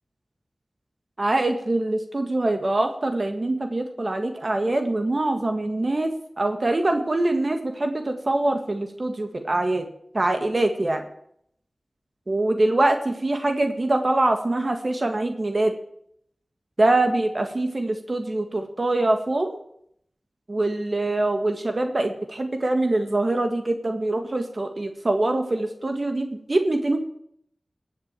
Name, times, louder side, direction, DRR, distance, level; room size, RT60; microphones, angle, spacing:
voice 1, 1.2-6.1 6.4-9.8 10.1-11.0 12.3-15.7 16.8-19.6 20.5-27.0, right 2 dB, 50° right, 5 dB, 1.6 m, -24 dB
19.0 x 7.6 x 7.4 m, 0.70 s
wide cardioid pair, 60°, 0 cm